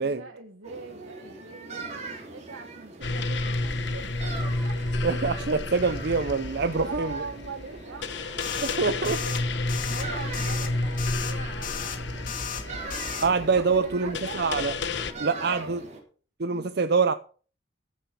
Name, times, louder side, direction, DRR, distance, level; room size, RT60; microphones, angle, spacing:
voice 1, 0.0-4.8 6.7-8.1 8.5-9.4 9.8-13.2 13.6-14.4 15.4-15.7 16.5-16.8, right 4 dB, 80° right, 1.4 m, -42 dB
sound 1, 0.6-16.0, right 3 dB, 35° right, 3.4 m, -42 dB
sound 2, 3.0-15.1, left 2 dB, 60° left, 1.1 m, -31 dB
voice 2, 5.0-7.2 8.6-9.2 13.2-14.7 15.2-15.8 16.4-17.1, right 4 dB, 55° right, 0.6 m, -25 dB
sound 3, 8.4-8.8 9.0-9.4 9.7-10.0 10.3-10.7 11.0-11.3 11.6-12.0 12.3-12.6 12.9-13.3, left 8 dB, 45° left, 2.1 m, -34 dB
15.0 x 6.9 x 5.9 m
head